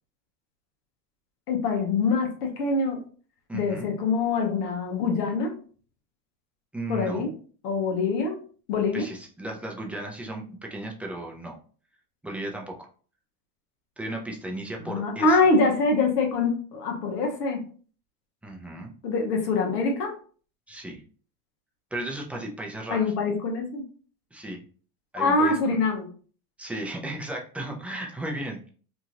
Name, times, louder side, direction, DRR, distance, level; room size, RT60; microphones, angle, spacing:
voice 1, 1.5-3.0 3.5-5.5 6.9-7.3 7.6-8.4 8.7-9.0 14.8-17.6 19.0-20.1 22.9-23.8 25.2-26.1, left 3 dB, 80° left, 2 dB, 1.1 m, -24 dB
voice 2, 3.5-3.9 6.7-7.3 8.9-11.6 12.2-12.9 14.0-15.4 18.4-18.9 20.7-21.0 21.9-23.1 24.3-24.6 25.1-25.8 26.6-28.7, right 1 dB, 5° right, 0 dB, 0.4 m, -35 dB
2.9 x 2.4 x 2.8 m, 0.42 s
hypercardioid pair, 100°, 47 cm